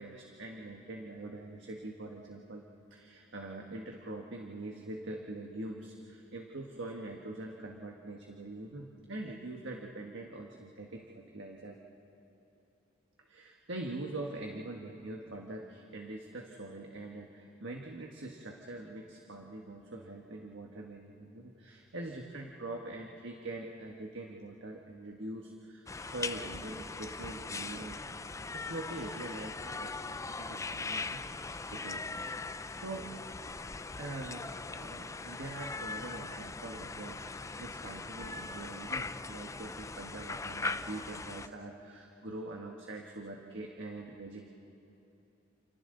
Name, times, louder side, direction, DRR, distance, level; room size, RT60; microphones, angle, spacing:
voice 1, 0.0-2.6 2.9-11.8 13.3-28.0 28.2-32.1 32.7-33.1 34.0-44.5, right 2 dB, 65° right, 1 dB, 1.5 m, -44 dB
sound 1, 25.9-41.5, left 3 dB, 15° left, 0.4 m, -40 dB
29.5 x 29.0 x 3.9 m, 2.9 s
head